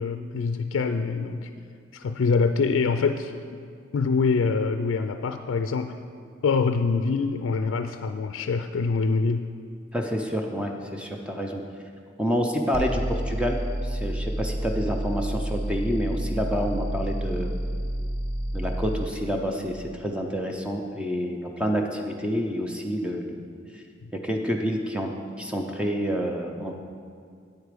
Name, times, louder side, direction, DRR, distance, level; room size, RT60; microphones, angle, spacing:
voice 1, 0.0-1.5 1.9-3.3 3.9-6.0 6.4-9.5, left 4 dB, 90° left, 8 dB, 0.4 m, -25 dB
voice 2, 9.9-11.6 12.2-17.6 18.5-23.4 23.7-23.8 24.1-25.1 25.4-26.7, equal, 5° right, 2 dB, 0.5 m, -28 dB
sound 1, 12.7-19.1, equal, 35° right, 1.0 m, -29 dB
8.3 x 8.1 x 5.1 m, 2.2 s
head